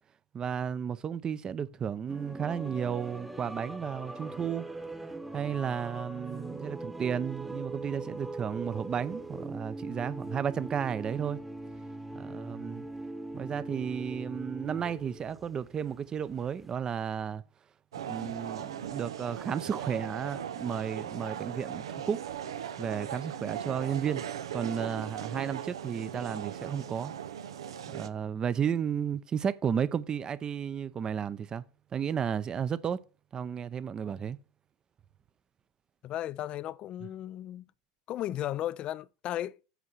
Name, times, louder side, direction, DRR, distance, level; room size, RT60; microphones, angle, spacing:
voice 1, 0.3-4.7 5.3-11.4 12.1-12.9 13.3-17.4 18.0-22.2 22.8-24.2 24.5-27.1 27.9-31.6 31.9-33.0 33.3-34.4, right 8 dB, 30° right, 0.7 m, -33 dB
sound 1, 2.1-16.7, right 2 dB, 5° right, 1.1 m, -41 dB
sound 2, 17.9-28.1, right 9 dB, 80° right, 0.6 m, -39 dB
voice 2, 36.0-37.7 38.1-39.6, left 13 dB, 45° left, 0.4 m, -35 dB
8.2 x 4.8 x 6.2 m
hypercardioid pair, 85°, 3 cm